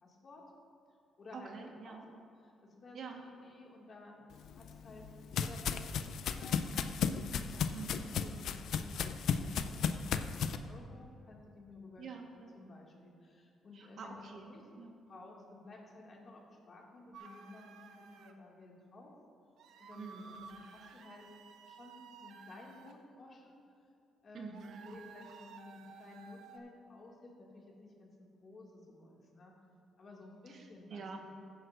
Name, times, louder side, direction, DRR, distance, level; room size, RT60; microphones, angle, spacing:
voice 1, 0.0-0.4 1.2-2.0 2.4-5.0 5.4-5.8 6.4-6.9 7.5-12.2 12.5-14.6 15.1-19.1 19.8-21.2 21.6-23.6 24.2-29.5 30.0-31.0, left 2 dB, 45° left, -2 dB, 2.1 m, -54 dB
voice 2, 1.3-2.0 2.9-3.2 7.7-8.1 12.0-12.5 13.7-14.9 20.0-20.4 24.3-24.9 30.5-30.6 30.9-31.2, right 5 dB, 65° right, 2 dB, 1.3 m, -47 dB
sound 1, 4.4-10.6, left 7 dB, 75° left, 0.4 m, -35 dB
sound 2, 17.1-18.3 19.6-22.9 24.5-26.6, right 6 dB, 80° right, 0.7 m, -54 dB
16.0 x 9.4 x 2.5 m, 2.5 s
cardioid pair, 90°, 0 cm